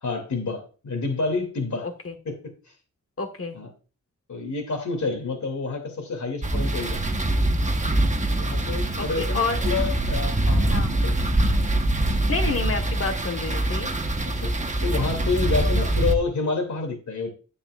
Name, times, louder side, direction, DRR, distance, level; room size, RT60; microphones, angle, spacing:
voice 1, 0.0-1.9 2.2-2.4 3.5-3.7 4.3-7.0 8.4-11.2 14.4-14.5 14.8-17.3, left 4 dB, 70° left, 2.6 m, -28 dB
voice 2, 1.8-2.1 3.2-3.6 8.9-9.6 10.7-10.9 12.3-13.9, left 4 dB, 45° left, 1.5 m, -29 dB
sound 1, 6.4-16.1, right 1 dB, 25° right, 1.1 m, -24 dB
10.0 x 9.6 x 2.4 m
wide cardioid pair, 130°, 30 cm